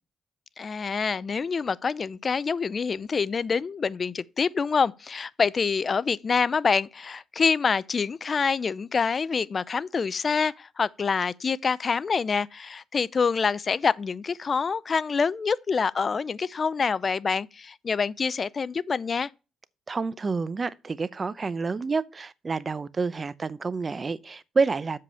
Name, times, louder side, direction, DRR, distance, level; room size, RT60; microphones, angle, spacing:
voice 1, 0.6-19.3, left 5 dB, 40° left, 0.4 m, -26 dB
voice 2, 19.9-25.0, right 4 dB, 35° right, 0.6 m, -28 dB
7.6 x 4.8 x 6.9 m
cardioid pair, 90°, 0 cm